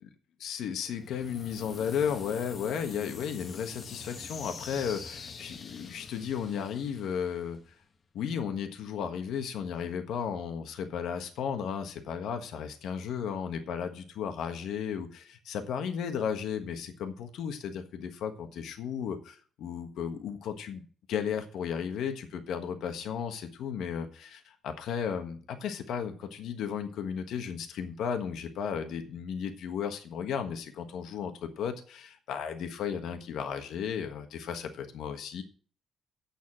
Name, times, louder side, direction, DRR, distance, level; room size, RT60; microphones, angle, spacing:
voice 1, 0.4-7.6 8.1-20.8 21.1-35.4, left 7 dB, 80° left, 7 dB, 1.4 m, -34 dB
sound 1, 1.0-7.8, left 5 dB, 50° left, 1.2 m, -45 dB
8.1 x 7.3 x 7.6 m, 0.42 s
cardioid pair, 90°, 0 cm